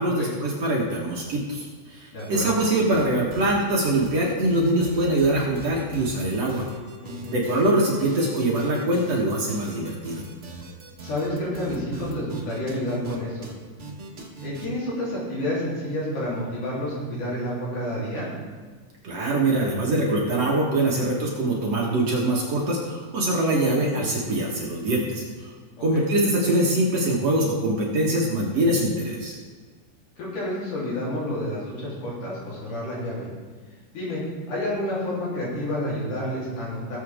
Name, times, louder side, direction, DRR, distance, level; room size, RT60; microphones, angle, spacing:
voice 1, 0.0-6.6 7.3-10.2 19.0-25.5 25.8-29.4, right 1 dB, 55° right, -3 dB, 2.4 m, -23 dB
voice 2, 2.1-2.5 7.0-7.4 11.0-13.5 14.4-18.3 23.6-23.9 25.9-26.1 30.2-33.3 33.9-37.0, left 1 dB, 65° left, -7 dB, 5.0 m, -29 dB
sound 1, 2.2-2.7 2.9-13.2 13.4-13.5 13.8-14.7, right 3 dB, 85° right, 0.6 m, -40 dB
18.5 x 7.6 x 3.7 m, 1.5 s
omnidirectional pair, 3.9 m